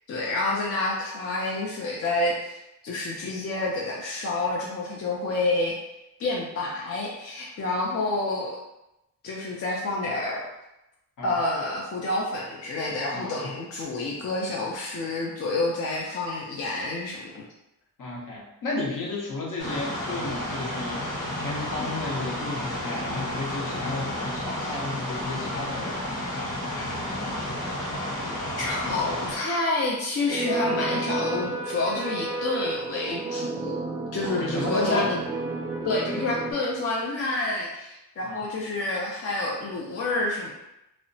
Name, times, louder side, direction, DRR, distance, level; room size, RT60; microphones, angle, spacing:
voice 1, 0.1-5.7 6.2-8.5 9.2-10.4 11.2-17.4 28.6-33.8 34.1-35.2 35.8-40.5, left 2 dB, 45° left, -3 dB, 0.4 m, -28 dB
voice 2, 13.1-13.5 18.0-25.9 26.3-27.0 34.2-35.1 38.2-38.4, left 2 dB, 65° left, -3 dB, 0.8 m, -33 dB
sound 1, 19.6-29.4, left 1 dB, 85° left, 1.0 m, -31 dB
sound 2, 30.3-36.5, right 3 dB, 25° right, 0.3 m, -31 dB
2.8 x 2.1 x 2.6 m, 0.90 s
cardioid pair, 125°, 36 cm